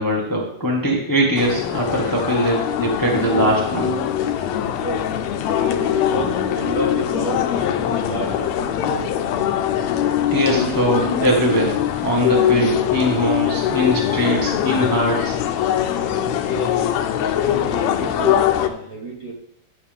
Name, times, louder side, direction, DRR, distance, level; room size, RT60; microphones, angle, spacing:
voice 1, 0.0-3.9 10.3-15.4, equal, 10° left, -2 dB, 0.9 m, -21 dB
sound 1, 1.4-18.7, left 10 dB, 80° left, 1.9 m, -22 dB
voice 2, 5.5-9.1 16.5-16.7 17.2-19.3, right 3 dB, 50° right, -3 dB, 1.1 m, -31 dB
11.0 x 7.2 x 3.6 m, 0.70 s
omnidirectional pair, 3.4 m